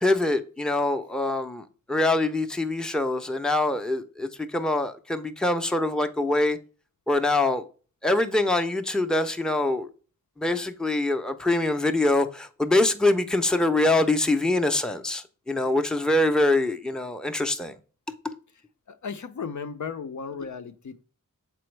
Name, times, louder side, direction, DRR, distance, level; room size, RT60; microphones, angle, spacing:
voice 1, 0.0-6.6 7.1-7.6 8.0-9.9 10.4-17.7 18.2-18.3, left 2 dB, ahead, 0.6 m, -24 dB
voice 2, 18.9-21.0, left 5 dB, 60° left, 0.5 m, -35 dB
6.9 x 4.4 x 3.2 m
wide cardioid pair, 80°, 33 cm